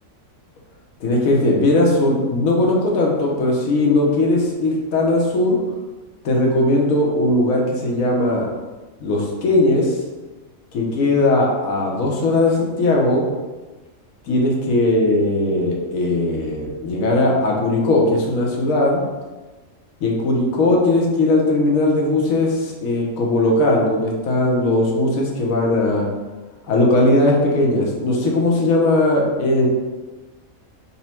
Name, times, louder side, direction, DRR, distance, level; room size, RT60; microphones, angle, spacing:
voice 1, 1.0-5.6 6.2-8.5 9.0-10.0 10.7-13.2 14.3-19.0 20.0-26.1 26.7-29.7, left 2 dB, 80° left, -1 dB, 1.1 m, -18 dB
4.1 x 2.0 x 4.2 m, 1.2 s
omnidirectional pair, 1.4 m